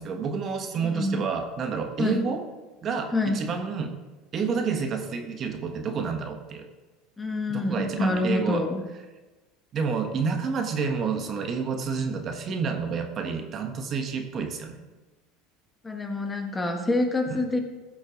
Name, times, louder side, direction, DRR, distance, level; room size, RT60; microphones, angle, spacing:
voice 1, 0.0-2.4 2.8-3.9 4.3-6.7 7.5-8.7 9.7-14.8 17.3-17.4, right 5 dB, 40° right, 5 dB, 1.3 m, -29 dB
voice 2, 0.8-1.3 2.0-2.3 3.1-3.4 7.2-8.9 15.8-17.6, left 2 dB, 15° left, 4 dB, 1.2 m, -27 dB
15.0 x 6.2 x 3.9 m, 1.2 s
supercardioid pair, 105°, 0 cm